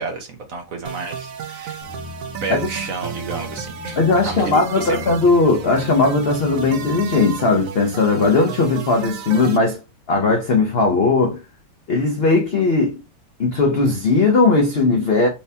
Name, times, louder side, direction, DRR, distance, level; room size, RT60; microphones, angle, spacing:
voice 1, 0.0-1.8 2.4-5.1, right 4 dB, 60° right, 1.0 m, -30 dB
sound 1, 0.8-9.6, right 7 dB, 80° right, 0.7 m, -33 dB
sound 2, 1.8-7.6, left 5 dB, 60° left, 1.2 m, -39 dB
voice 2, 4.0-9.8 10.1-11.4 11.9-13.0 13.4-15.3, left 3 dB, 80° left, 0.5 m, -18 dB
4.5 x 2.8 x 3.3 m
omnidirectional pair, 2.0 m